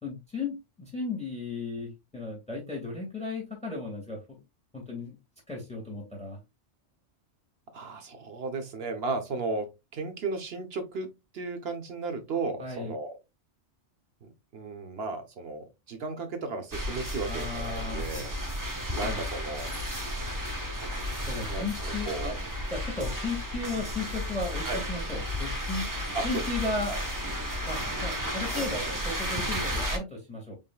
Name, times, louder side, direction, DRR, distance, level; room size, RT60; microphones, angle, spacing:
voice 1, 0.0-4.4 4.7-5.2 5.5-6.4 12.6-12.9 17.3-18.2 19.0-19.2 21.3-22.4 22.7-25.8 26.2-26.9 27.6-30.6, left 3 dB, 5° left, 0 dB, 1.9 m, -35 dB
voice 2, 7.7-13.2 14.2-18.3 18.9-19.7 21.5-22.3 24.6-24.8 26.1-26.5 26.9-27.0 28.5-29.0, right 3 dB, 60° right, 7 dB, 1.2 m, -35 dB
sound 1, 16.7-30.0, equal, 20° right, 0.9 m, -33 dB
5.1 x 3.7 x 2.3 m, 0.22 s
omnidirectional pair, 1.2 m